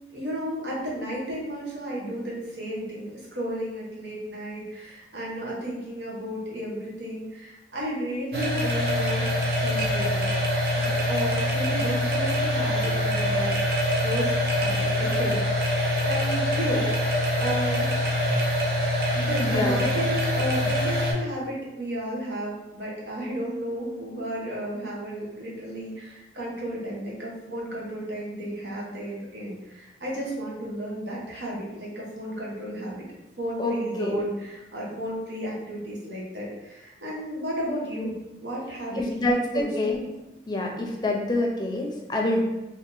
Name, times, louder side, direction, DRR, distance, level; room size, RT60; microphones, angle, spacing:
voice 1, 0.1-13.6 14.0-17.9 19.1-33.0 33.4-39.7, equal, 85° right, -5 dB, 1.1 m, -33 dB
sound 1, 8.3-21.1, left 1 dB, 55° right, 0.6 m, -24 dB
voice 2, 19.4-19.9 33.6-34.2 38.9-40.0 40.5-42.4, left 1 dB, 25° left, 0 dB, 0.4 m, -27 dB
2.8 x 2.6 x 3.8 m, 0.97 s
head